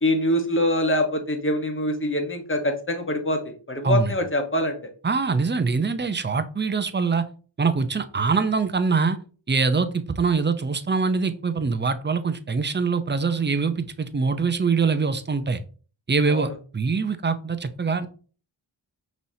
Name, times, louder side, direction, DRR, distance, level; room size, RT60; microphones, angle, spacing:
voice 1, 0.0-4.8 16.3-16.5, left 1 dB, 25° left, 5 dB, 1.1 m, -24 dB
voice 2, 5.0-7.2 7.6-9.2 9.5-15.6 16.1-18.1, right 4 dB, 25° right, 10 dB, 0.5 m, -23 dB
5.5 x 3.0 x 2.7 m, 0.39 s
cardioid pair, 50°, 49 cm